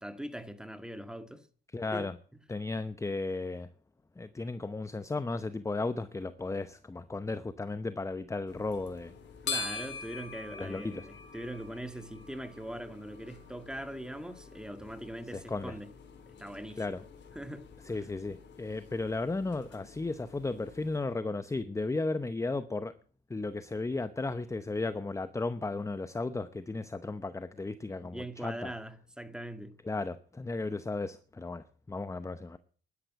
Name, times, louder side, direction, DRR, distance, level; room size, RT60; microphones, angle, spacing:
voice 1, 0.0-1.5 1.9-2.1 9.4-15.9 16.4-17.0 17.4-17.7 28.0-29.8, right 1 dB, 5° right, 1.8 m, -41 dB
voice 2, 1.7-2.2 2.5-3.7 4.2-9.1 10.5-11.1 15.3-15.8 16.8-17.0 17.8-22.9 23.3-28.7 29.8-32.6, left 3 dB, 15° left, 0.8 m, -35 dB
sound 1, 8.5-21.0, left 4 dB, 65° left, 3.6 m, -45 dB
12.0 x 11.0 x 8.0 m
cardioid pair, 90°, 20 cm